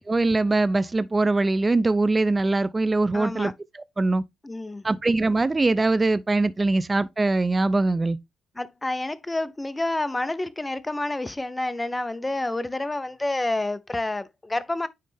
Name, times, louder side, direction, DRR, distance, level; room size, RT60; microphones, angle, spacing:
voice 1, 0.1-4.2 4.8-8.2, right 2 dB, 20° right, 0.4 m, -22 dB
voice 2, 3.1-3.5 4.4-4.9 8.6-14.9, left 2 dB, 15° left, 0.6 m, -29 dB
9.2 x 3.2 x 3.4 m
cardioid pair, 90°, 0 cm